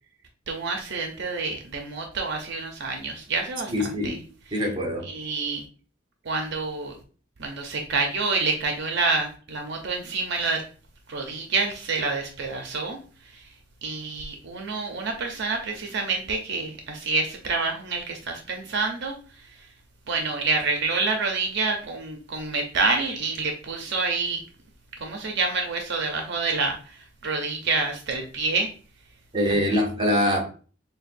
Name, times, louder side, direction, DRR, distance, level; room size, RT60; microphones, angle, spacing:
voice 1, 0.5-4.2 4.5-4.7 5.0-5.6 6.2-7.0 7.4-10.6 11.1-13.0 13.3-13.4 13.8-19.1 20.1-24.4 25.0-27.0 27.2-28.7 29.5-29.8, right 3 dB, 60° right, 3 dB, 0.6 m, -28 dB
voice 2, 3.7-4.2 4.5-5.1 29.3-30.4, left 1 dB, 25° right, 0 dB, 1.1 m, -23 dB
6.7 x 2.2 x 2.5 m, 0.40 s
head